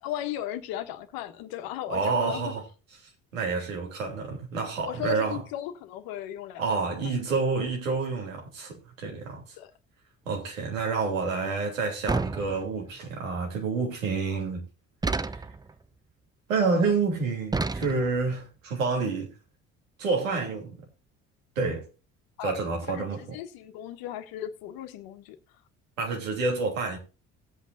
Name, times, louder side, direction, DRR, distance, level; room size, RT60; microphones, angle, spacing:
voice 1, 0.0-2.5 4.8-6.6 7.0-7.2 9.6-9.7 22.4-22.6 22.9-25.4, left 12 dB, 65° left, 1.4 m, -36 dB
voice 2, 1.9-2.6 3.3-5.4 6.6-9.4 10.3-14.6 15.2-15.5 16.5-19.3 20.0-20.8 21.5-21.9 22.4-23.2 26.0-27.0, right 4 dB, 85° right, 3.1 m, -28 dB
sound 1, 12.1-13.0 15.0-15.7 17.5-18.3, right 3 dB, 10° right, 0.5 m, -30 dB
18.0 x 8.4 x 2.6 m
hypercardioid pair, 55°, 38 cm